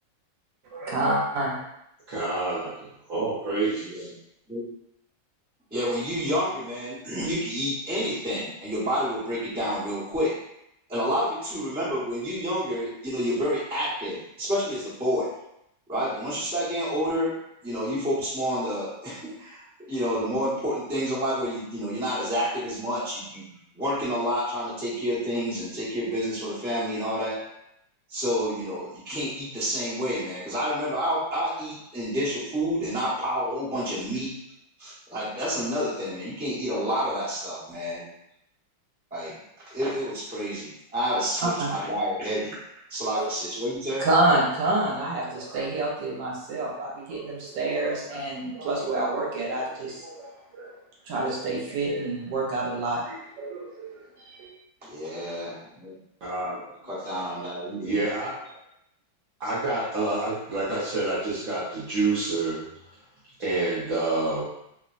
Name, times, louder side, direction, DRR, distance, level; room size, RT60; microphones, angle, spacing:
voice 1, 0.7-1.6 41.4-41.7 43.1-43.3 44.0-50.7 51.1-54.5, right 2 dB, 75° right, -4 dB, 1.3 m, -28 dB
voice 2, 2.1-4.1 56.2-56.7 57.8-58.5 59.4-62.6 63.4-64.4, right 2 dB, 60° right, -9 dB, 1.0 m, -28 dB
voice 3, 3.8-4.1 4.5-4.7 5.7-10.4 10.9-15.3 15.9-27.4 28.1-34.4 34.8-38.1 39.1-39.4 39.7-42.6 42.9-44.1 54.8-55.9 56.8-57.9, equal, 10° right, -11 dB, 0.7 m, -29 dB
3.2 x 2.0 x 2.4 m, 0.80 s
omnidirectional pair, 2.1 m